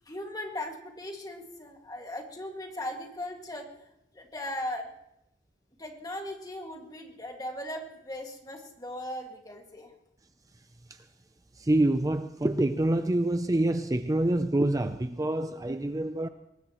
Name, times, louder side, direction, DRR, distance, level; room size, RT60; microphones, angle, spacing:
voice 1, 0.1-4.9 5.8-9.9, left 1 dB, 20° left, 2.1 m, -38 dB
voice 2, 11.6-16.3, right 1 dB, 20° right, 0.5 m, -26 dB
23.0 x 19.5 x 3.1 m
head